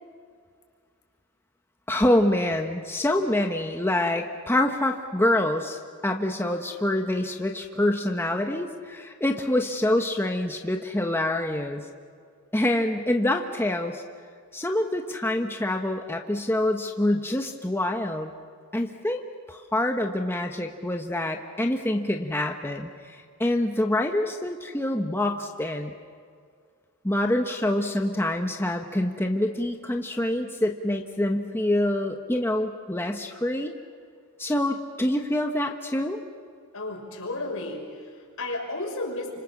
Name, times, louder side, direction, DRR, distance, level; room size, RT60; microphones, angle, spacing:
voice 1, 1.9-11.8 12.5-14.0 14.5-18.3 18.7-19.2 19.5-25.9 27.0-33.7 34.4-36.2, left 1 dB, 10° left, 3 dB, 1.1 m, -26 dB
voice 2, 36.7-39.4, left 2 dB, 75° left, 1 dB, 5.8 m, -33 dB
30.0 x 26.0 x 7.2 m, 2.1 s
head